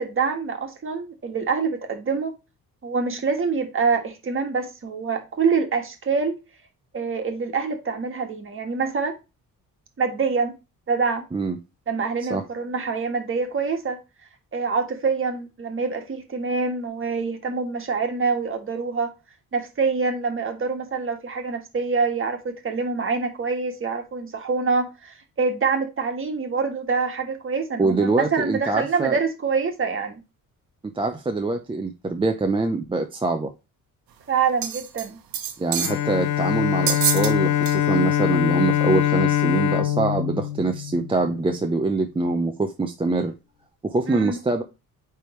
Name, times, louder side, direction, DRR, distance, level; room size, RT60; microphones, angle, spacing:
voice 1, 0.0-2.3 2.8-6.4 6.9-9.1 10.0-10.6 10.9-11.2 11.9-14.0 14.5-19.1 19.5-30.2 34.3-35.2 44.1-44.4, right 5 dB, 35° right, 1.6 m, -25 dB
voice 2, 27.8-29.2 31.0-33.5 35.6-43.3 43.8-44.6, right 3 dB, 15° right, 0.6 m, -24 dB
sound 1, 34.6-35.1 35.3-36.0 36.9-37.3 37.6-37.8 38.3-38.4, right 10 dB, 70° right, 1.1 m, -26 dB
Bowed string instrument, 35.8-41.5, left 11 dB, 85° left, 0.7 m, -23 dB
9.1 x 3.5 x 3.1 m
cardioid pair, 125°, 36 cm